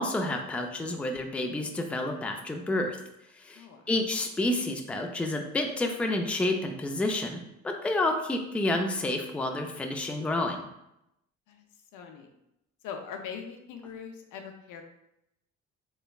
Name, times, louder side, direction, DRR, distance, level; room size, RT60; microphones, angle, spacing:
voice 1, 0.0-3.0 3.3-10.6, left 2 dB, 5° left, 3 dB, 0.3 m, -29 dB
voice 2, 3.5-3.9 11.5-11.7 11.9-12.3 12.8-14.8, left 7 dB, 85° left, 4 dB, 0.5 m, -41 dB
3.2 x 3.1 x 2.3 m, 0.85 s
cardioid pair, 90°, 30 cm